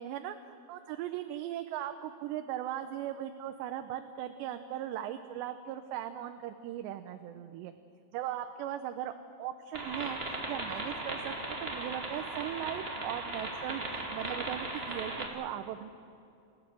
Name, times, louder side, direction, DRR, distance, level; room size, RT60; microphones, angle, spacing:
voice 1, 0.0-7.7 8.1-9.1 9.4-15.9, right 11 dB, 90° right, 8 dB, 3.0 m, -38 dB
sound 1, 9.7-15.3, right 2 dB, 20° right, 1.7 m, -37 dB
28.5 x 16.0 x 7.5 m, 2.5 s
omnidirectional pair, 4.9 m